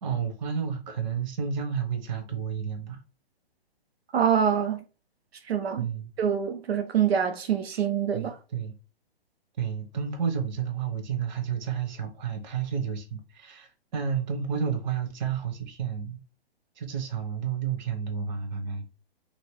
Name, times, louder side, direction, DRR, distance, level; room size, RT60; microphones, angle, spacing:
voice 1, 0.0-3.0 5.8-6.1 7.7-7.8 8.1-8.8 9.6-16.2 16.8-18.9, right 7 dB, 50° right, 0.9 m, -31 dB
voice 2, 4.1-4.8 5.5-5.9 6.2-8.4, right 8 dB, 85° right, 0.5 m, -25 dB
2.9 x 2.7 x 3.0 m
hypercardioid pair, 135°, 30 cm